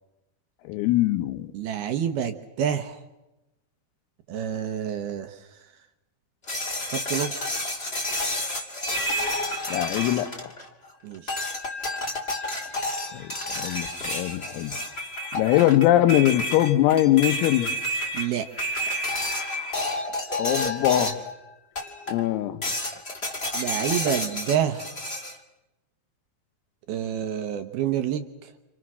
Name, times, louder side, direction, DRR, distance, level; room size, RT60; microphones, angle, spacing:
voice 1, 0.7-1.5 9.7-10.3 13.1-13.3 13.6-14.7 15.3-17.7 20.4-21.2 22.1-22.6, left 14 dB, 85° left, 10 dB, 3.9 m, -22 dB
voice 2, 1.5-3.0 4.3-5.5 6.9-7.6 11.0-11.5 18.1-18.5 18.8-19.1 23.5-24.9 26.9-28.5, right 9 dB, 75° right, 7 dB, 2.3 m, -28 dB
sound 1, 6.5-10.8 11.3-21.3 21.7-22.3 22.6-25.4, left 1 dB, 25° left, 1.3 m, -30 dB
29.5 x 28.0 x 6.3 m, 0.97 s
omnidirectional pair, 6.0 m